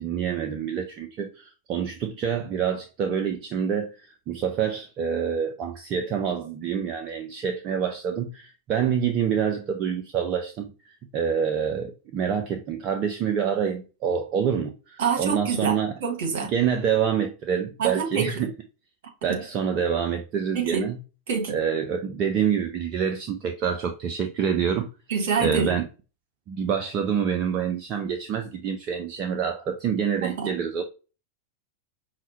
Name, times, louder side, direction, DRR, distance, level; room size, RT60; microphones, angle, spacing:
voice 1, 0.0-10.7 11.1-15.9 16.3-18.5 19.2-21.0 21.5-24.9 25.4-25.9 26.5-30.8, right 7 dB, 35° right, 0.4 m, -27 dB
voice 2, 15.0-15.8 16.0-16.5 17.8-18.3 20.5-20.9 21.3-21.5 25.1-25.8 30.2-30.5, right 6 dB, 55° right, 1.1 m, -26 dB
5.5 x 2.1 x 2.9 m
figure-of-eight pair, 90°, 0 cm